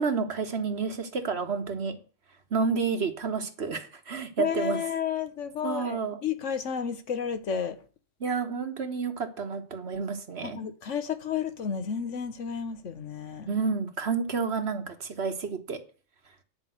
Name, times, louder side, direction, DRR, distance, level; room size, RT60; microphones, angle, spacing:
voice 1, 0.0-2.0 2.5-4.8 5.6-6.2 8.2-10.6 13.5-15.8, right 5 dB, 55° right, 1.4 m, -30 dB
voice 2, 4.4-7.8 10.4-13.5, left 7 dB, 65° left, 1.3 m, -32 dB
10.0 x 5.2 x 7.9 m
omnidirectional pair, 1.4 m